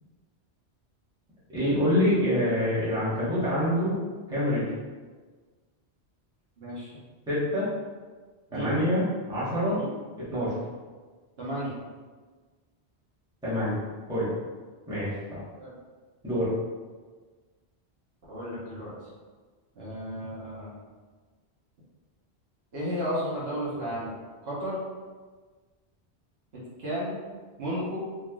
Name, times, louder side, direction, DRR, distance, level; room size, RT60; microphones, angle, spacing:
voice 1, 1.5-4.0 4.3-4.7 7.3-7.7 8.5-9.8 10.3-10.5 13.4-13.8 14.1-14.3 14.9-15.4 16.2-16.5, equal, 5° right, -11 dB, 0.9 m, -26 dB
voice 2, 6.6-6.9 8.5-8.8 9.8-9.9 11.4-11.7 15.6-15.7 18.3-18.9 19.8-20.8 22.7-24.1 24.4-24.8 26.8-27.2 27.6-28.0, equal, 65° right, -8 dB, 1.0 m, -33 dB
3.2 x 2.4 x 2.3 m, 1.4 s
omnidirectional pair, 1.1 m